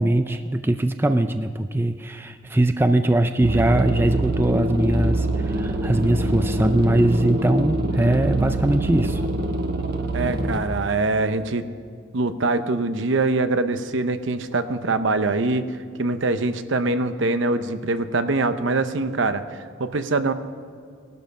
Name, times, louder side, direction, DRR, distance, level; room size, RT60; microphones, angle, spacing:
voice 1, 0.0-9.2, right 1 dB, 10° right, 8 dB, 0.4 m, -21 dB
sound 1, 3.4-10.6, right 2 dB, 50° right, 1.1 m, -25 dB
voice 2, 10.1-11.6 12.1-15.7 16.0-20.3, right 3 dB, 70° right, 10 dB, 0.8 m, -23 dB
18.0 x 12.0 x 5.4 m, 2.2 s
head